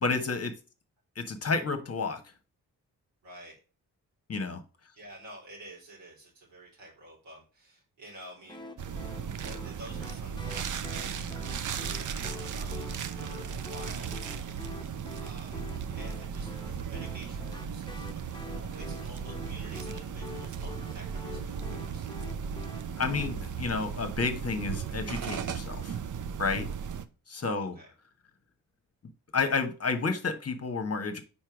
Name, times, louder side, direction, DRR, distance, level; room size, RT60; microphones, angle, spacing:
voice 1, 0.0-0.5 1.2-2.2 4.3-4.6 23.0-26.0 26.4-26.7 27.3-27.8 29.3-31.2, left 4 dB, 35° left, 7 dB, 1.1 m, -30 dB
voice 2, 3.2-3.5 5.0-8.9 9.4-11.1 11.6-14.1 14.7-15.6 15.9-18.0 18.3-22.1 27.7-27.9, right 1 dB, 85° right, -4 dB, 2.9 m, -50 dB
sound 1, 8.5-23.3, left 3 dB, 10° left, 1.0 m, -47 dB
sound 2, 8.8-27.1, right 7 dB, 45° right, 0.6 m, -36 dB
4.4 x 4.3 x 5.0 m, 0.34 s
supercardioid pair, 40°, 43 cm